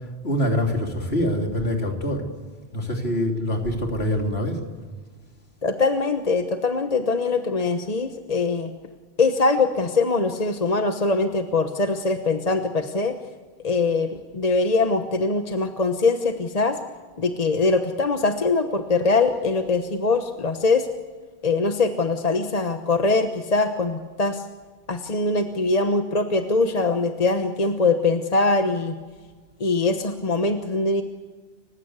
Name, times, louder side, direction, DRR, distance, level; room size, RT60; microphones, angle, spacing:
voice 1, 0.2-2.3 2.7-4.6, equal, 85° left, 2 dB, 3.5 m, -24 dB
voice 2, 5.6-8.7 9.2-13.2 13.6-16.8 17.2-20.9 21.4-24.4 24.9-28.9 29.6-31.0, left 3 dB, 40° left, 6 dB, 1.1 m, -22 dB
30.0 x 16.0 x 8.2 m, 1.4 s
omnidirectional pair, 1.0 m